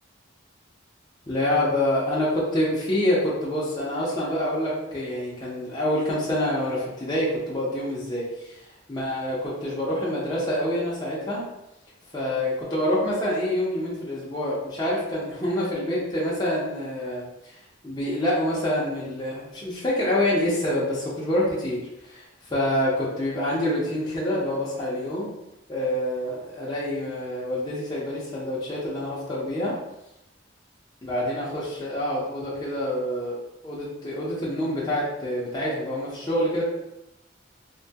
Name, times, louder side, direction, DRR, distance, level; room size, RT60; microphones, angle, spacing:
voice 1, 1.3-8.6 8.9-11.4 12.1-17.6 17.8-21.8 22.1-22.2 22.5-25.3 25.7-29.8 31.0-33.4 33.6-36.6, left 1 dB, 20° left, -8 dB, 0.6 m, -26 dB
2.7 x 2.2 x 2.7 m, 0.89 s
head